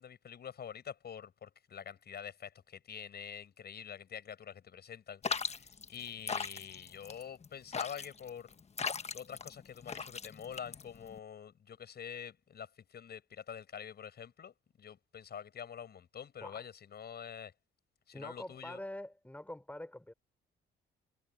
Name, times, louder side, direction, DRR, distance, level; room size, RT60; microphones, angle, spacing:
voice 1, 0.0-8.6 9.1-17.5 18.1-18.8, left 8 dB, 55° left, 6.1 m, -46 dB
sound 1, 5.2-11.2, left 5 dB, 35° left, 1.2 m, -39 dB
voice 2, 18.1-20.1, left 1 dB, 5° left, 4.9 m, -45 dB
cardioid pair, 90°, 20 cm